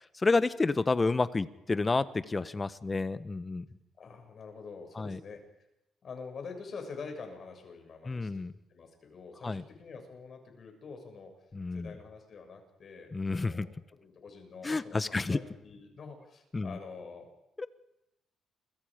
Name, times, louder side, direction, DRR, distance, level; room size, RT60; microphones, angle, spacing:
voice 1, 0.2-3.7 5.0-5.2 8.1-8.5 9.4-9.6 11.5-11.9 13.1-13.7 14.6-15.4 16.5-16.8 17.6-17.7, left 3 dB, 25° left, 13 dB, 1.2 m, -30 dB
voice 2, 4.0-5.4 6.0-8.4 8.7-11.3 11.7-17.3, left 4 dB, 50° left, 4 dB, 6.9 m, -46 dB
29.0 x 23.5 x 5.2 m, 0.89 s
cardioid pair, 90°, 0 cm